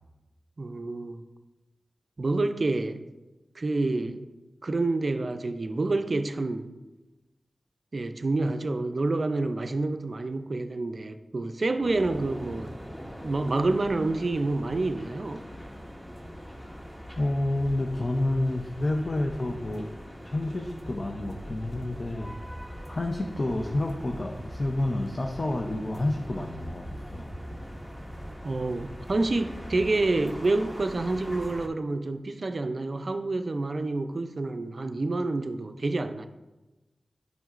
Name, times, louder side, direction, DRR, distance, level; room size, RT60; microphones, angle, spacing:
voice 1, 0.6-1.2 2.2-3.0 3.6-4.3 4.6-6.7 7.9-12.7 13.2-15.5 28.4-36.3, right 2 dB, 55° right, 0.4 m, -28 dB
sound 1, 11.8-31.7, equal, 5° left, 0.9 m, -41 dB
voice 2, 17.2-19.9 20.2-22.3 22.9-27.3, left 1 dB, 45° left, 0.6 m, -29 dB
9.0 x 5.5 x 2.5 m
wide cardioid pair, 60°, 0 cm